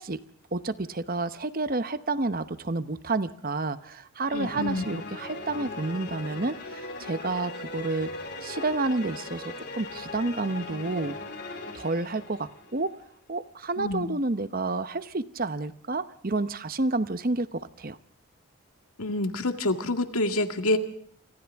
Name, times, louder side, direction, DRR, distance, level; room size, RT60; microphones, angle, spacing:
voice 1, 0.0-8.1 8.4-11.2 11.7-13.0 13.3-18.0, right 2 dB, 40° right, 12 dB, 0.9 m, -30 dB
voice 2, 4.3-4.8 13.8-14.1 19.0-20.8, left 2 dB, 75° left, 7 dB, 2.0 m, -27 dB
sound 1, 4.3-12.8, left 2 dB, 50° left, 4.5 m, -39 dB
29.0 x 25.5 x 3.6 m, 0.65 s
head